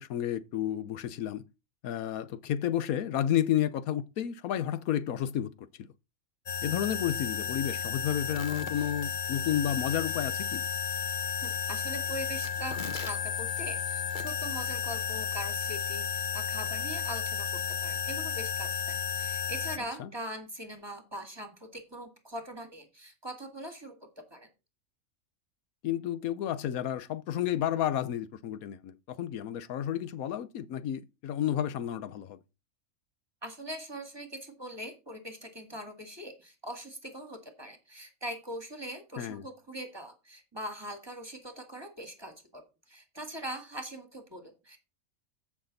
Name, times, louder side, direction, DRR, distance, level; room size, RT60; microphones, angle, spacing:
voice 1, 0.0-1.4 1.8-5.5 6.6-10.6 20.0-20.1 25.8-32.4 39.2-39.4, left 10 dB, 85° left, 1.2 m, -31 dB
sound 1, 6.5-19.8, left 7 dB, 40° left, 1.0 m, -33 dB
voice 2, 11.4-24.5 33.4-44.8, right 1 dB, 20° right, 1.8 m, -42 dB
14.5 x 6.1 x 4.0 m
omnidirectional pair, 1.5 m